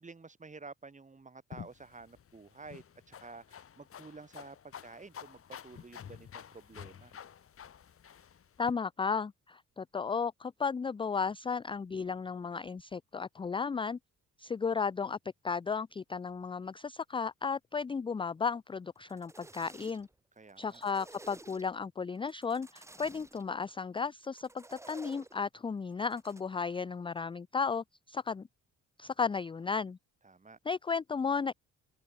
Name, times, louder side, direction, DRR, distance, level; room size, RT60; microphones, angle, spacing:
voice 1, 0.0-7.1 20.4-20.8 30.2-30.6, right 4 dB, 25° right, 3.9 m, -51 dB
sound 1, 1.5-8.7, left 8 dB, 45° left, 1.6 m, -50 dB
voice 2, 8.6-14.0 14.4-15.2 15.4-20.1 20.6-28.5 29.0-30.0 30.7-31.5, left 5 dB, 15° left, 0.4 m, -34 dB
sound 2, 19.0-20.2 20.5-21.9 22.3-23.4 24.2-25.4 25.9-26.4, right 2 dB, 10° right, 0.9 m, -53 dB
cardioid pair, 90°, 30 cm